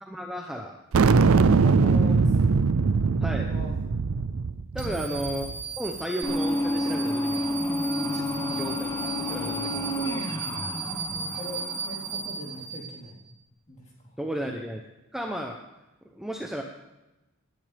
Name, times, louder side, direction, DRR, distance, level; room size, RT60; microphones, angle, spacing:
voice 1, 0.0-0.7 3.2-3.5 4.7-5.5 5.8-7.4 8.1-8.2 8.5-10.2 14.2-14.8 15.1-15.6 16.0-16.6, equal, ahead, 1 dB, 0.8 m, -34 dB
sound 1, 0.9-5.6, right 4 dB, 65° right, 0.4 m, -21 dB
voice 2, 1.1-2.6 3.4-3.9 4.8-5.2 7.6-8.6 9.9-10.4 11.1-13.2 13.7-14.4, equal, 30° left, -5 dB, 4.0 m, -40 dB
sound 2, 4.8-13.2, right 6 dB, 35° right, 2.6 m, -36 dB
sound 3, 6.2-12.6, left 1 dB, 15° left, 1.2 m, -30 dB
19.0 x 10.5 x 3.5 m, 0.99 s
head